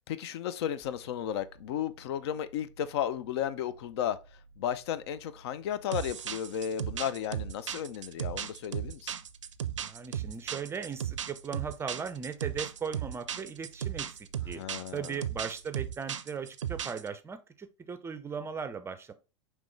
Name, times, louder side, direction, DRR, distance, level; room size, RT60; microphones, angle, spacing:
voice 1, 0.1-4.2 4.6-9.1 14.6-15.2, left 10 dB, 60° left, 0.4 m, -34 dB
sound 1, 0.8-16.6, right 3 dB, 5° left, 1.9 m, -58 dB
sound 2, 5.9-17.1, right 9 dB, 80° right, 0.4 m, -36 dB
voice 2, 9.8-14.6 14.9-19.1, right 6 dB, 15° right, 0.5 m, -38 dB
5.1 x 3.1 x 3.2 m
hypercardioid pair, 90°, 15 cm